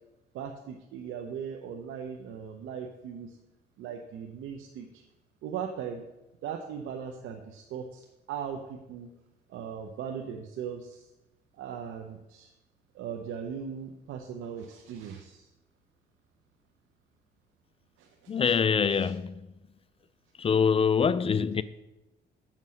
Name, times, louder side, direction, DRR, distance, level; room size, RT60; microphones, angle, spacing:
voice 1, 0.3-3.4 3.8-5.0 5.4-6.1 6.4-8.0 8.3-9.1 9.5-11.1 11.6-12.5 12.9-15.5 18.0-18.1 18.3-18.5 18.9-19.1, right 7 dB, 85° right, 0.7 m, -39 dB
voice 2, 18.3-19.4 20.4-21.6, left 6 dB, 30° left, 0.4 m, -24 dB
7.4 x 5.3 x 6.3 m
cardioid pair, 90°, 20 cm